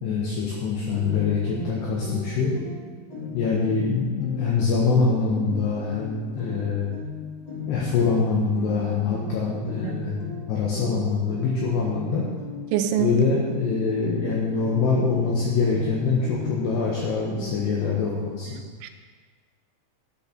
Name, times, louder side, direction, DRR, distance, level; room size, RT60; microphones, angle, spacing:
voice 1, 0.0-2.5 3.3-6.9 7.7-12.2 13.0-18.5, left 4 dB, 70° left, -4 dB, 3.0 m, -24 dB
sound 1, 0.9-18.4, left 4 dB, 25° left, 2.8 m, -37 dB
voice 2, 12.7-13.2 18.5-18.9, right 10 dB, 85° right, 5 dB, 3.2 m, -26 dB
12.5 x 6.8 x 5.9 m, 1.5 s
omnidirectional pair, 5.7 m